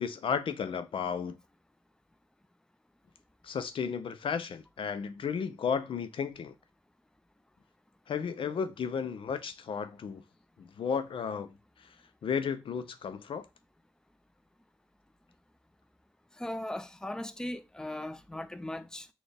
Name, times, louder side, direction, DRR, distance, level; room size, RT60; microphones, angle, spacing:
voice 1, 0.0-1.4 3.4-6.5 8.1-10.2 10.6-11.5 12.2-13.5, left 6 dB, 80° left, 0.5 m, -33 dB
voice 2, 16.3-19.1, left 1 dB, 5° left, 0.4 m, -38 dB
4.1 x 2.3 x 3.3 m
cardioid pair, 50°, 9 cm